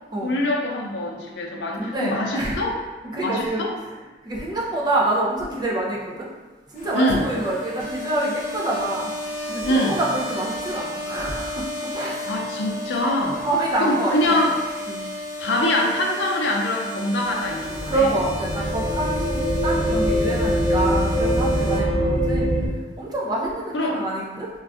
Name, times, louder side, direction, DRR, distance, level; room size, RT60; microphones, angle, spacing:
voice 1, 0.2-2.8 3.2-3.7 6.9-7.3 9.6-10.0 12.2-13.4 13.8-14.6 15.4-18.1 21.7-22.2 23.7-24.0, left 1 dB, 85° left, 0 dB, 0.5 m, -24 dB
voice 2, 1.7-2.6 3.1-3.7 4.2-6.3 6.7-9.1 9.5-11.7 11.9-12.3 13.4-14.4 14.9-15.0 17.9-22.5 23.0-24.5, right 2 dB, 25° right, -4 dB, 0.5 m, -26 dB
sound 1, 6.7-21.8, left 1 dB, 45° left, 0.7 m, -33 dB
sound 2, 17.5-22.7, equal, 5° left, 0.8 m, -23 dB
2.6 x 2.3 x 3.4 m, 1.2 s
head